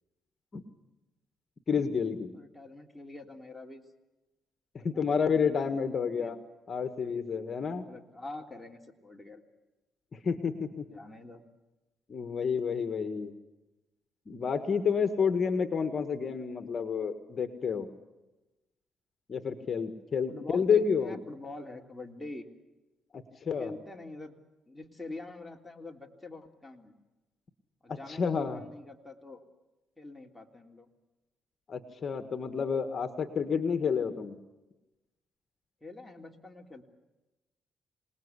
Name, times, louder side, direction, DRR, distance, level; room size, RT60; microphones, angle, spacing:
voice 1, 1.7-2.3 4.7-6.4 6.7-7.9 10.1-10.8 12.1-13.3 14.3-17.9 19.3-21.2 23.1-23.7 27.9-28.6 31.7-34.4, left 6 dB, 45° left, 8 dB, 1.7 m, -30 dB
voice 2, 2.3-3.8 4.9-6.3 7.8-9.4 10.9-11.4 20.3-22.5 23.3-24.4 24.7-26.9 27.8-29.4 30.0-30.9 35.8-36.8, left 2 dB, 5° left, 1 dB, 3.3 m, -45 dB
27.0 x 19.5 x 8.3 m, 1.1 s
cardioid pair, 90°, 0 cm